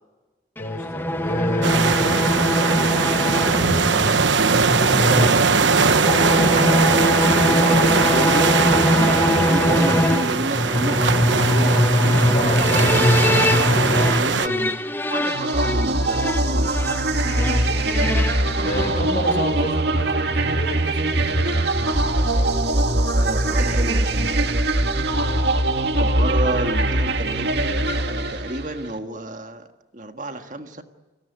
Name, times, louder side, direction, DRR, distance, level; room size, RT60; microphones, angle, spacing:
voice 1, 0.6-2.2 12.1-13.0 13.8-14.7 17.3-18.0 18.6-21.5 25.2-25.5, left 1 dB, 45° left, 8 dB, 5.0 m, -30 dB
sound 1, 0.6-19.6, left 1 dB, 10° left, 1.1 m, -22 dB
sound 2, 1.6-14.5, right 5 dB, 90° right, 1.1 m, -20 dB
voice 2, 4.0-5.9 6.3-8.6 8.9-12.2 12.6-13.1 14.1-14.8 15.1-16.7 23.1-24.5 25.9-29.6 29.9-30.8, right 1 dB, 45° right, 6 dB, 1.7 m, -30 dB
sound 3, 15.2-28.9, right 1 dB, 65° right, 2.1 m, -22 dB
30.0 x 18.5 x 9.7 m, 1.3 s
head